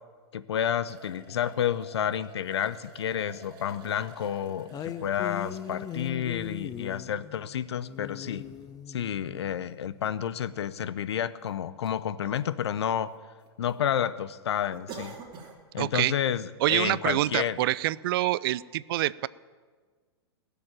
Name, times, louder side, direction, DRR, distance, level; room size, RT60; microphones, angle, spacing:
voice 1, 0.3-8.5 8.9-13.1 13.6-15.2 15.7-17.6, left 9 dB, 80° left, 16 dB, 0.7 m, -30 dB
sound 1, 0.8-6.2 6.9-7.0 8.6-8.7 9.0-9.1 10.1-10.2 10.4-10.5 11.1-11.6 11.8-12.0 12.4-13.1 13.4-13.7 14.1-14.2 14.7-15.6 16.0-16.2 16.6-16.7, right 4 dB, 35° right, 2.9 m, -48 dB
sound 2, 4.7-10.2, left 10 dB, 25° left, 0.7 m, -40 dB
voice 2, 15.8-16.1 16.6-19.3, right 16 dB, 60° right, 20 dB, 0.5 m, -26 dB
20.5 x 7.0 x 8.9 m, 1.5 s
hypercardioid pair, 110°, 14 cm